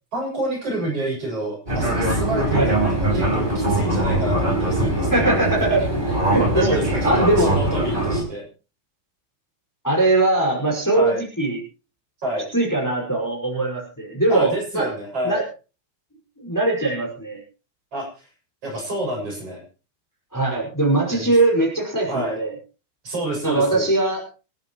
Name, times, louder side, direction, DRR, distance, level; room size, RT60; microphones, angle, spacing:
voice 1, 0.1-5.5 6.5-8.5 10.9-11.2 12.2-12.5 14.3-15.4 17.9-18.3 18.6-19.6 21.1-21.3 22.0-22.4 23.0-23.9, right 1 dB, 50° right, -1 dB, 8.0 m, -28 dB
Fixed-wing aircraft airplane, 1.7-8.2, right 1 dB, 15° right, 5.8 m, -22 dB
voice 2, 5.1-5.8 6.2-6.7 7.0-7.5 9.8-11.6 12.5-14.9 15.2-15.4 16.4-17.4 20.3-22.5 23.4-24.2, right 2 dB, 5° left, -1 dB, 5.2 m, -21 dB
27.0 x 10.5 x 3.1 m, 0.34 s
omnidirectional pair, 3.5 m